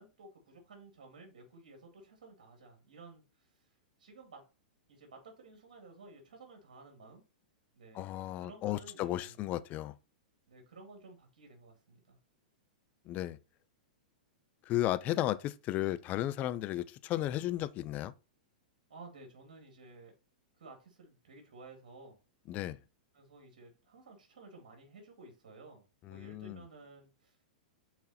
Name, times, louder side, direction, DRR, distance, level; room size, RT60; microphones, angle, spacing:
voice 1, 0.0-3.7 4.0-4.4 4.9-7.2 7.7-9.4 10.5-12.2 18.9-20.1 20.6-22.2 23.1-27.4, right 3 dB, 65° right, 2.2 m, -54 dB
voice 2, 7.9-9.9 13.1-13.4 14.7-18.1 22.5-22.8 26.1-26.6, left 14 dB, 35° left, 0.5 m, -34 dB
6.0 x 4.2 x 4.2 m
hypercardioid pair, 105°, 4 cm